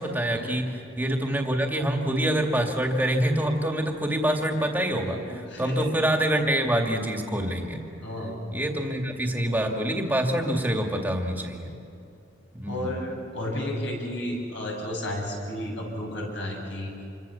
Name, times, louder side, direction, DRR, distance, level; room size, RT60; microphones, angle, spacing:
voice 1, 0.0-7.8 8.5-11.7 12.5-13.0, right 1 dB, 10° right, 2 dB, 2.4 m, -26 dB
voice 2, 5.5-5.9 8.0-8.4 12.7-16.9, left 1 dB, 60° left, 0 dB, 7.6 m, -32 dB
27.5 x 24.0 x 7.2 m, 2.7 s
head